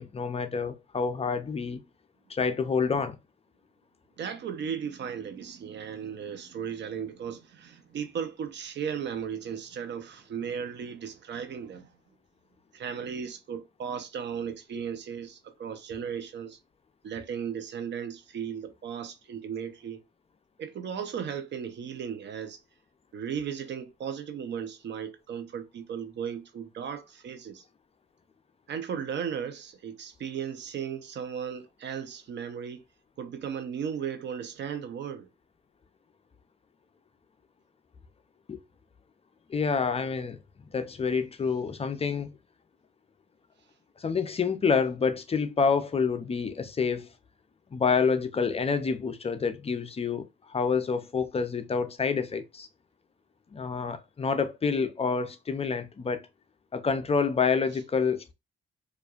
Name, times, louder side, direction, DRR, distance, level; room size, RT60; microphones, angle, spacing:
voice 1, 0.0-1.8 2.3-3.2 38.5-38.6 39.5-40.4 40.7-42.3 44.0-47.1 47.7-52.7 53.5-56.2 56.7-58.2, left 5 dB, 30° left, 0.5 m, -28 dB
voice 2, 4.2-11.9 12.7-16.6 17.0-20.0 20.6-22.6 23.1-27.6 28.7-32.8 33.2-35.3, right 7 dB, 65° right, 0.8 m, -36 dB
4.8 x 2.5 x 2.4 m
cardioid pair, 90°, 20 cm